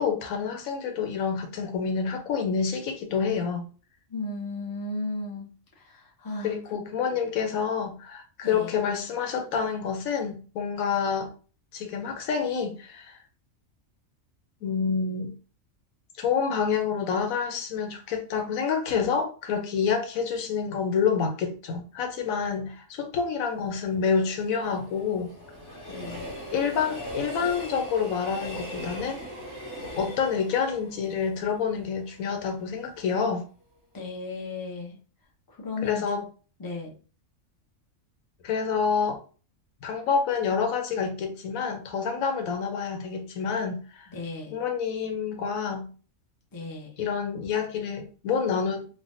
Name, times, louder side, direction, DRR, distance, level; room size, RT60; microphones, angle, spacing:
voice 1, 0.0-3.7 6.4-11.3 11.7-13.2 14.6-15.3 16.2-25.3 26.5-29.2 29.9-33.4 35.8-36.2 38.4-39.2 39.8-44.1 44.5-45.9 47.0-48.9, left 6 dB, 90° left, 1.1 m, -28 dB
voice 2, 4.1-5.5 5.8-6.5 8.4-8.8 25.9-26.3 33.9-35.0 35.5-36.0 36.6-36.9 44.1-44.6 46.5-46.9, left 2 dB, 20° left, 0.6 m, -35 dB
Train, 23.5-32.6 33.0-33.1, equal, 65° left, 1.2 m, -40 dB
3.3 x 2.2 x 2.6 m
omnidirectional pair, 1.4 m